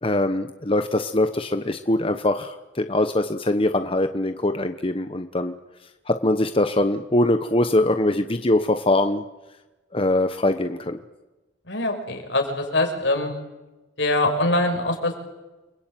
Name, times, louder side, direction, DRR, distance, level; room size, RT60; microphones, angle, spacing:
voice 1, 0.0-5.5 6.1-9.2 9.9-11.0, left 1 dB, 30° left, 8 dB, 1.1 m, -22 dB
voice 2, 11.7-13.3 14.0-15.2, left 2 dB, 75° left, 3 dB, 6.2 m, -23 dB
30.0 x 21.5 x 9.2 m, 1.1 s
head